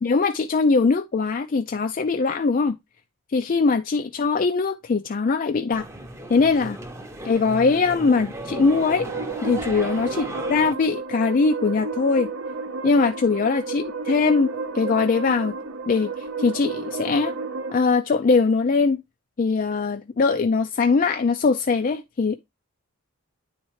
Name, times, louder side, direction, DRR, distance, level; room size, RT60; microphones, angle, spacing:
voice 1, 0.0-2.7 3.3-5.8 6.3-6.8 7.2-9.1 9.4-12.3 12.8-15.5 15.9-17.3 17.7-19.0 19.4-22.4, left 4 dB, 40° left, 0.3 m, -21 dB
sound 1, 5.7-10.7, right 1 dB, 15° right, 0.7 m, -36 dB
sound 2, 8.4-17.8, right 4 dB, 65° right, 0.8 m, -32 dB
9.5 x 4.3 x 3.1 m
head